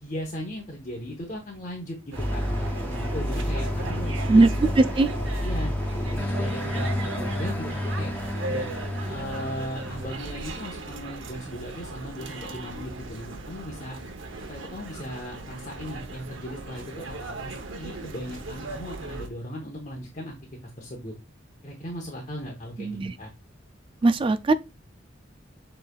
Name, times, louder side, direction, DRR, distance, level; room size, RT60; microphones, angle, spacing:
voice 1, 0.0-2.4 3.1-4.5 5.4-5.7 6.0-8.1 8.4-8.7 9.1-14.0 14.5-20.4 20.8-21.1 21.6-23.3, equal, 40° left, 0.9 m, -37 dB
sound 1, 2.1-19.3, right 3 dB, 85° right, 0.8 m, -38 dB
sound 2, 2.2-10.5, equal, 10° left, 0.7 m, -29 dB
voice 2, 4.8-5.1 22.8-23.1 24.0-24.5, right 2 dB, 25° right, 0.3 m, -19 dB
6.7 x 3.2 x 2.3 m
head